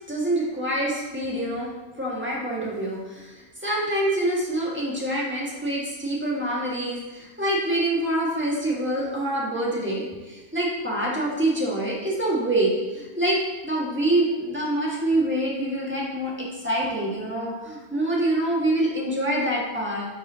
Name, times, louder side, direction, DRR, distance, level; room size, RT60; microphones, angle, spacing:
voice 1, 0.1-1.7 2.0-20.1, right 1 dB, 10° right, -5 dB, 1.7 m, -26 dB
10.5 x 5.4 x 2.8 m, 1.2 s
omnidirectional pair, 1.5 m